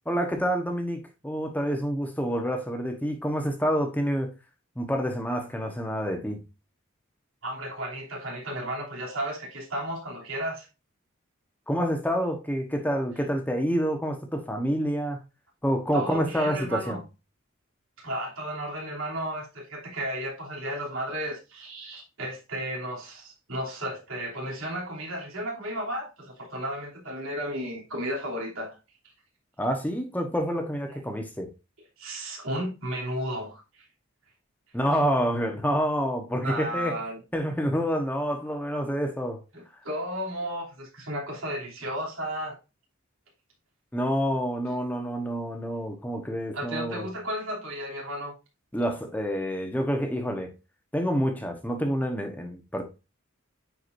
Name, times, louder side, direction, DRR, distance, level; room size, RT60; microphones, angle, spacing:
voice 1, 0.1-4.3 4.8-6.4 11.7-15.2 15.6-17.0 29.6-31.5 34.7-37.0 37.3-39.4 43.9-47.1 48.7-50.5 50.9-52.8, equal, 10° left, 1.0 m, -28 dB
voice 2, 7.4-10.7 15.9-17.0 18.0-28.8 32.0-33.9 36.4-37.2 39.5-42.6 46.5-48.3, equal, 75° right, 3.0 m, -33 dB
9.7 x 4.8 x 2.6 m
head